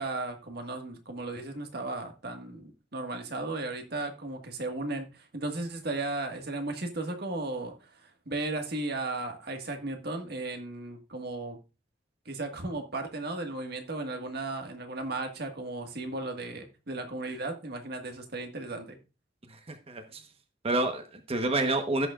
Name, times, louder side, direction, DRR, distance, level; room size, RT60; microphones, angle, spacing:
voice 1, 0.0-11.6 12.2-19.0, right 2 dB, 60° right, 1.7 m, -35 dB
voice 2, 19.5-20.2 20.6-22.1, right 2 dB, 35° right, 1.1 m, -29 dB
16.0 x 6.9 x 2.4 m
head